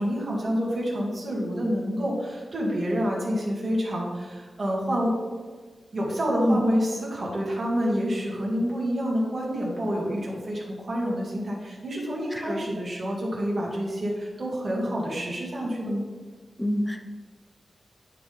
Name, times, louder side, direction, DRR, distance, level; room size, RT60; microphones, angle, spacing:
voice 1, 0.0-5.1 5.9-16.0, equal, 45° right, -5 dB, 2.2 m, -28 dB
voice 2, 16.6-17.0, equal, 10° left, 6 dB, 0.6 m, -25 dB
9.9 x 3.8 x 3.4 m, 1.4 s
wide cardioid pair, 95°, 0 cm